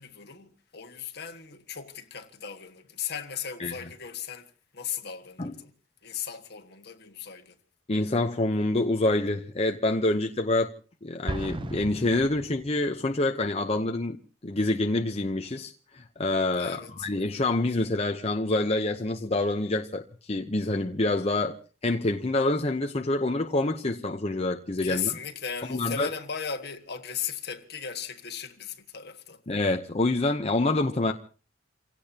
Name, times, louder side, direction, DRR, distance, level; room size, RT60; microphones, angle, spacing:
voice 1, 0.0-5.7 6.0-7.6 16.6-17.1 24.8-29.4, left 8 dB, 60° left, 1.7 m, -37 dB
voice 2, 7.9-10.7 11.0-21.6 21.8-25.1 25.7-26.1 29.5-31.1, left 2 dB, 30° left, 0.8 m, -27 dB
Explosion, 11.3-13.1, right 2 dB, 25° right, 0.7 m, -36 dB
29.0 x 17.0 x 2.9 m
head